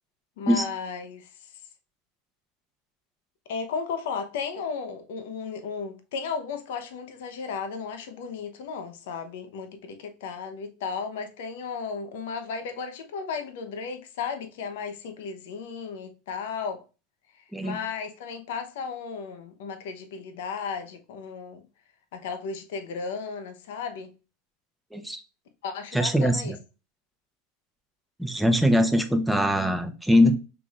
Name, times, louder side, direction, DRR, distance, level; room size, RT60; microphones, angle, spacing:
voice 1, 0.4-1.3 3.5-16.8 17.6-21.6 22.1-24.1 25.6-26.5, left 5 dB, 70° left, 0.8 m, -34 dB
voice 2, 25.9-26.6 28.2-30.3, equal, ahead, 0.8 m, -22 dB
5.8 x 3.4 x 2.4 m
hypercardioid pair, 90°, 0 cm